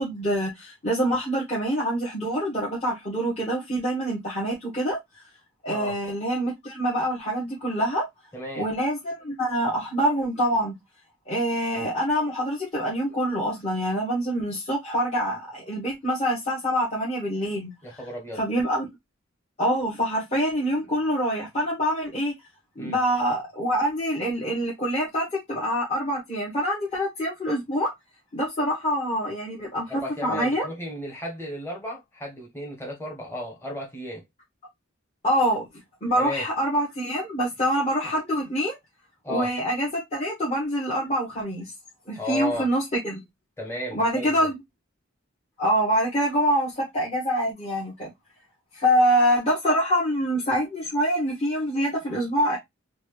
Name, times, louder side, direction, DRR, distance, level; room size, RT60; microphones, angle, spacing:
voice 1, 0.0-5.0 5.6-8.0 8.6-10.7 11.3-17.7 18.3-18.9 19.6-22.3 22.8-27.9 28.3-30.7 35.2-35.6 36.0-38.8 39.3-41.7 42.1-43.2 43.9-44.6 45.6-48.1 48.7-52.6, equal, 30° left, 1.4 m, -25 dB
voice 2, 8.3-8.7 17.8-18.4 22.8-23.0 29.9-34.2 36.2-36.4 39.2-39.5 42.1-42.7 43.6-44.5, left 1 dB, 10° left, 1.2 m, -34 dB
4.0 x 2.4 x 3.2 m
head